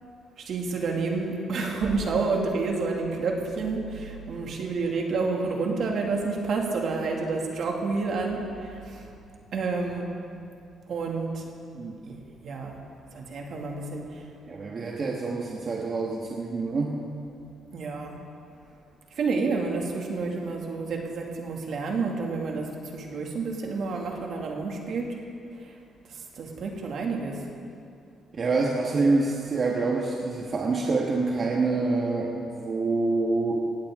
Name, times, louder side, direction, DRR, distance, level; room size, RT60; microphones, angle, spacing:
voice 1, 0.4-9.0 9.5-10.1 10.9-11.4 12.0-12.2 12.4-12.7 13.1-14.0 17.7-18.2 19.2-25.1 26.4-27.4, right 4 dB, 65° right, 0 dB, 2.4 m, -29 dB
voice 2, 14.5-17.0 28.3-33.6, right 3 dB, 45° right, -2 dB, 1.6 m, -26 dB
18.0 x 15.5 x 3.8 m, 2.6 s
cardioid pair, 90°, 0 cm